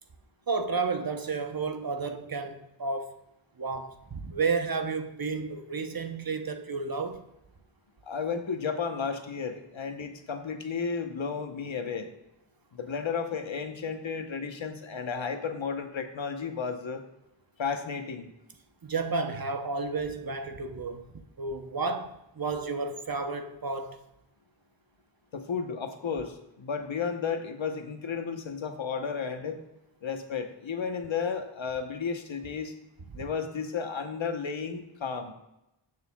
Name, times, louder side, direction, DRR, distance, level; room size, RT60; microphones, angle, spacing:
voice 1, 0.5-3.2 3.6-7.2 18.8-21.1 21.4-24.0 33.1-33.2, right 4 dB, 50° right, 0.8 m, -32 dB
voice 2, 8.0-12.1 12.7-17.0 17.6-18.3 25.3-29.6 30.0-32.7 33.1-35.3, left 6 dB, 75° left, 1.0 m, -33 dB
16.5 x 6.6 x 2.3 m
wide cardioid pair, 70°, 46 cm